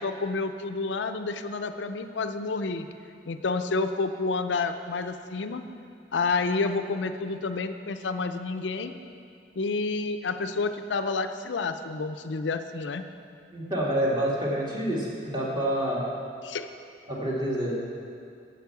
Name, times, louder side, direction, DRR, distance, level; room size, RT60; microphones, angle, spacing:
voice 1, 0.0-2.9 3.3-5.6 6.1-8.9 9.6-13.1 16.4-16.7, left 3 dB, 80° left, 8 dB, 0.5 m, -29 dB
voice 2, 13.5-16.0 17.1-17.8, right 1 dB, 25° right, -5 dB, 2.1 m, -27 dB
8.4 x 7.4 x 8.2 m, 2.4 s
head